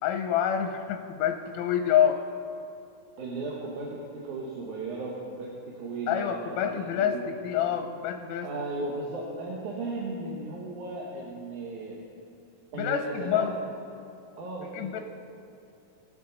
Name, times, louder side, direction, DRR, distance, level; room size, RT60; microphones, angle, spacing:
voice 1, 0.0-2.2 6.1-7.2 7.4-8.5 12.7-13.5 14.7-15.0, left 9 dB, 80° left, 5 dB, 1.8 m, -27 dB
voice 2, 3.2-7.2 8.4-12.0 12.7-13.5 14.4-15.0, right 2 dB, 80° right, -3 dB, 2.5 m, -36 dB
20.5 x 7.0 x 3.9 m, 2.5 s
omnidirectional pair, 3.5 m